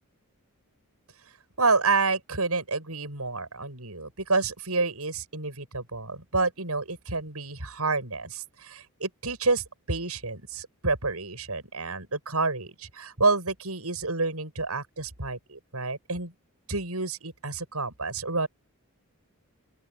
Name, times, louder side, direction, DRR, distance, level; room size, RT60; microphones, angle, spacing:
voice 1, 1.6-16.3 16.7-18.5, right 3 dB, 80° right, 7.8 m, -29 dB
open air
head